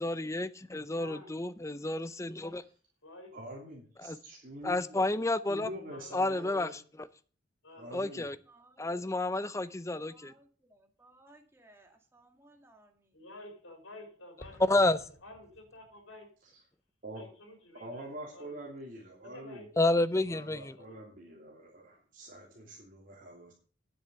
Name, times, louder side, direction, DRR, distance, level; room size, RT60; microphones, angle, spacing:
voice 1, 0.0-2.6 4.1-4.2 4.6-5.7 6.1-7.1 7.9-8.4 8.8-10.3 14.6-15.0 19.8-20.8, left 2 dB, 15° left, 14 dB, 0.6 m, -30 dB
voice 2, 0.9-1.3 3.0-3.6 5.9-6.4 7.6-8.0 13.1-16.3 17.1-18.7 19.2-19.8 20.7-21.0, left 1 dB, 90° left, 3 dB, 4.2 m, -51 dB
voice 3, 3.3-4.7 5.5-6.7 7.7-8.3 17.0-17.2 17.8-19.7 20.3-23.5, right 1 dB, 45° right, -4 dB, 2.9 m, -45 dB
voice 4, 8.5-8.9 10.0-13.1, right 2 dB, 15° right, 3 dB, 2.0 m, -61 dB
Explosion, 14.4-16.2, left 1 dB, 75° left, 3.4 m, -55 dB
10.0 x 7.8 x 6.9 m, 0.41 s
head